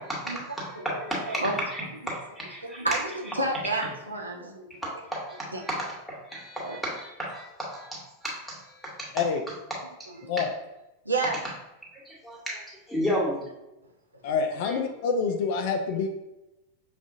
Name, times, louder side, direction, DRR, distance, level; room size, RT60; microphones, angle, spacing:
voice 1, 0.0-1.4 1.7-3.0 4.8-9.1 10.2-10.4 12.0-13.4 14.6-14.8, equal, ahead, -5 dB, 1.3 m, -33 dB
voice 2, 2.6-4.7 5.5-5.6 6.6-6.8 10.1-10.3 11.1-11.4, right 2 dB, 80° right, 0 dB, 0.6 m, -30 dB
voice 3, 14.2-16.1, left 5 dB, 50° left, 5 dB, 0.4 m, -26 dB
5.9 x 2.4 x 2.6 m, 0.94 s
figure-of-eight pair, 90°, 0 cm